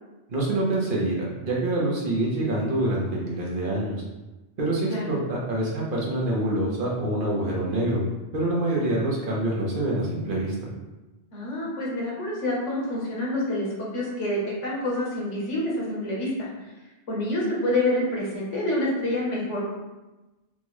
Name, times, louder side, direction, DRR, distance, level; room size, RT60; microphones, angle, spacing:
voice 1, 0.3-4.0 4.6-8.0 8.3-10.6, right 1 dB, 50° right, -4 dB, 1.1 m, -26 dB
voice 2, 11.3-16.5 17.1-19.6, left 1 dB, 90° left, -4 dB, 1.5 m, -27 dB
5.5 x 2.4 x 3.1 m, 1.1 s
omnidirectional pair, 1.2 m